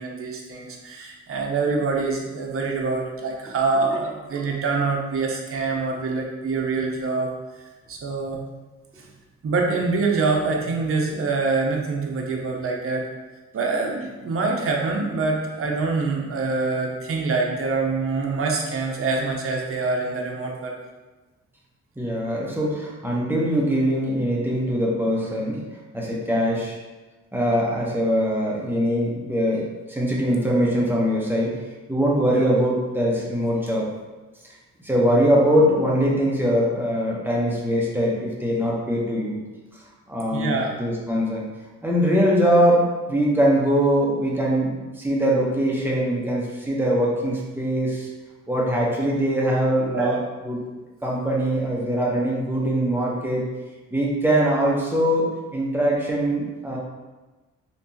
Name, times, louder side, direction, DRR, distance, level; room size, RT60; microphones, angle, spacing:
voice 1, 0.0-7.3 7.9-8.4 9.0-9.1 9.4-13.0 13.5-20.7 32.3-32.5 40.3-40.8 49.9-50.2, right 3 dB, 50° right, 0 dB, 0.7 m, -25 dB
voice 2, 22.0-25.6 25.9-26.8 27.3-31.5 31.9-33.9 34.8-39.4 40.1-41.4 41.8-48.1 48.5-50.6 51.0-53.5 53.9-56.8, equal, 5° right, -4 dB, 0.8 m, -22 dB
3.3 x 2.9 x 2.7 m, 1.2 s
cardioid pair, 95°, 30 cm